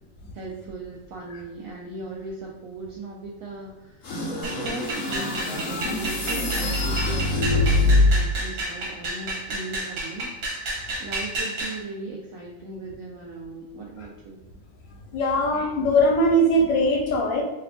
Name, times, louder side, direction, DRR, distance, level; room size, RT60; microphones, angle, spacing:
voice 1, 0.3-10.3 10.5-10.7 11.0-14.4, right 3 dB, 75° right, -3 dB, 0.7 m, -38 dB
sound 1, 4.0-8.4, left 2 dB, 65° left, 0.9 m, -23 dB
sound 2, 4.4-11.8, right 1 dB, 60° right, 1.4 m, -31 dB
voice 2, 15.1-17.4, equal, 85° left, 0 dB, 1.4 m, -21 dB
3.3 x 2.3 x 3.4 m, 1.1 s
omnidirectional pair, 1.9 m